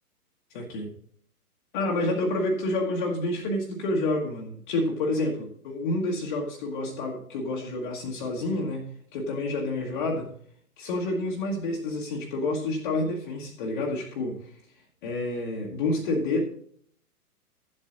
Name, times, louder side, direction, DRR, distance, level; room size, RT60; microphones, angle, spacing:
voice 1, 0.5-0.9 1.7-8.9 9.1-10.3 10.8-14.5 15.0-16.4, left 2 dB, 30° left, -1 dB, 1.4 m, -28 dB
12.0 x 7.8 x 3.9 m, 0.62 s
figure-of-eight pair, 120°, 46 cm